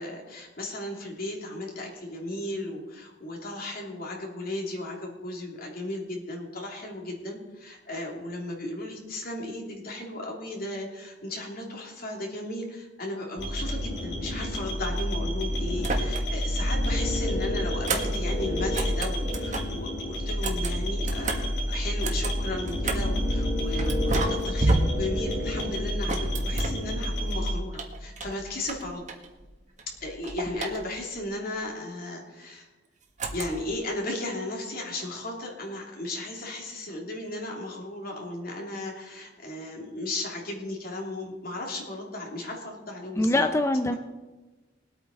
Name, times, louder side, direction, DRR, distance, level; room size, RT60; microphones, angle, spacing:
voice 1, 0.0-29.0 30.0-32.7 33.3-43.5, left 1 dB, 50° left, 0 dB, 3.1 m, -35 dB
sound 1, 13.4-27.5, equal, 75° left, 4.6 m, -29 dB
sound 2, 15.8-16.5 16.8-19.8 20.3-23.2 23.8-27.3 27.7-29.5 29.8-31.2 33.2-33.8, right 2 dB, 40° right, 1.6 m, -32 dB
voice 2, 43.2-43.9, left 1 dB, 15° left, 7 dB, 0.5 m, -23 dB
21.0 x 8.7 x 4.2 m, 1.2 s
head